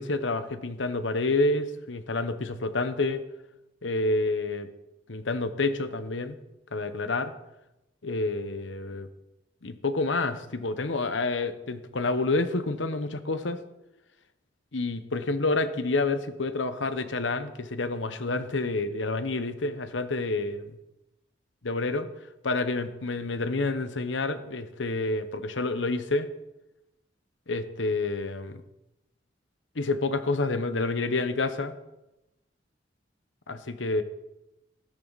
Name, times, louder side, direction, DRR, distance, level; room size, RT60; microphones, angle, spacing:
voice 1, 0.0-3.2 3.8-4.7 5.1-6.4 6.7-7.3 8.0-9.1 9.6-13.6 14.7-20.7 21.6-22.1 22.4-26.3 27.5-28.6 29.7-31.7 33.5-34.0, left 3 dB, 85° left, 10 dB, 1.1 m, -28 dB
14.0 x 13.5 x 4.1 m, 0.93 s
head